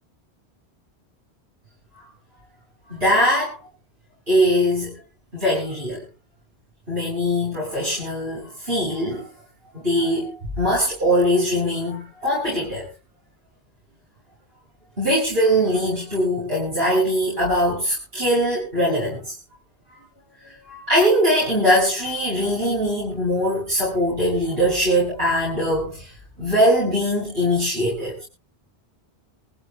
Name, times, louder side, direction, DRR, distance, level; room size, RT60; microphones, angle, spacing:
voice 1, 2.9-3.6 4.3-4.9 5.3-6.0 6.9-9.3 9.7-12.9 15.0-19.4 19.9-20.0 20.4-26.1 26.4-28.2, equal, 60° right, -7 dB, 7.3 m, -21 dB
25.5 x 15.0 x 2.3 m, 0.33 s
omnidirectional pair, 1.1 m